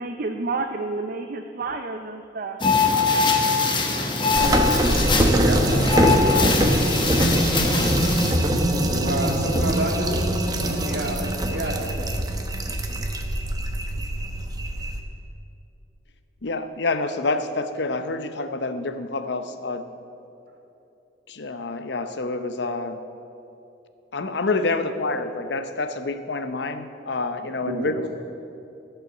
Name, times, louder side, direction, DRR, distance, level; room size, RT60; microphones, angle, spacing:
voice 1, 0.0-2.6, right 3 dB, 50° right, 6 dB, 0.5 m, -30 dB
sound 1, 2.6-8.4, left 4 dB, 25° left, 1.0 m, -22 dB
sound 2, 4.3-15.0, right 1 dB, 20° right, 0.8 m, -23 dB
voice 2, 4.4-4.7 5.3-5.6 6.2-6.5 8.7-11.9 27.5-27.9, right 1 dB, 70° right, 0 dB, 2.1 m, -29 dB
voice 3, 16.4-19.9 21.3-23.0 24.1-28.1, left 3 dB, 65° left, 9 dB, 0.7 m, -27 dB
15.0 x 5.7 x 7.8 m, 2.8 s
head